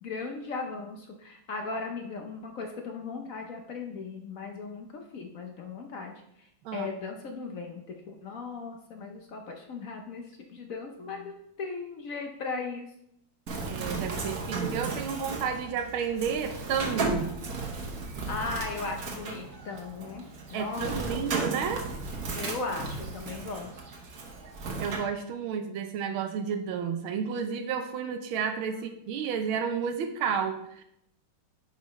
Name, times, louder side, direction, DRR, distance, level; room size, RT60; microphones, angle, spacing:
voice 1, 0.0-10.2 10.5-12.9 18.3-20.2 20.5-20.9 22.3-23.7 28.7-28.8, left 4 dB, 55° left, 3 dB, 1.0 m, -37 dB
Bird, 13.5-25.0, right 3 dB, 50° right, 1.4 m, -35 dB
voice 2, 13.6-17.3 20.5-21.9 24.8-30.8, right 7 dB, 85° right, 7 dB, 1.5 m, -31 dB
9.7 x 5.4 x 3.1 m, 0.75 s
omnidirectional pair, 2.2 m